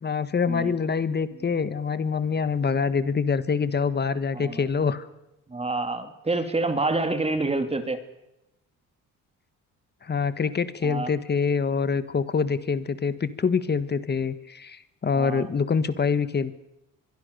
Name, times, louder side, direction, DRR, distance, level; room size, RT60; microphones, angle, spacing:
voice 1, 0.0-5.1 10.0-16.5, left 5 dB, 30° left, 13 dB, 1.6 m, -25 dB
voice 2, 4.3-4.7 5.5-8.0 10.8-11.1 15.1-15.5, right 2 dB, 20° right, 8 dB, 2.7 m, -27 dB
24.5 x 22.5 x 6.9 m, 0.90 s
cardioid pair, 125°, 33 cm